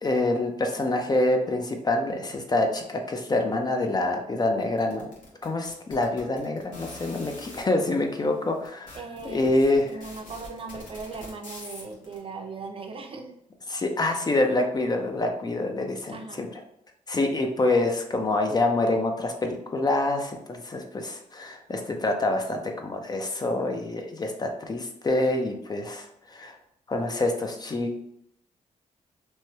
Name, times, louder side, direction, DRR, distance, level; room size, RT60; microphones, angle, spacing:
voice 1, 0.0-5.1 5.4-9.0 9.2-10.0 13.7-16.5 17.1-26.5 26.9-28.0, left 2 dB, 30° left, 4 dB, 0.5 m, -26 dB
sound 1, 4.8-7.6 8.3-8.4 8.6-12.2, left 2 dB, 70° left, 1.1 m, -44 dB
voice 2, 8.9-9.5 9.8-13.4 16.1-16.5, right 4 dB, 40° right, 3 dB, 0.5 m, -38 dB
3.0 x 2.2 x 2.8 m, 0.76 s
cardioid pair, 65°, 14 cm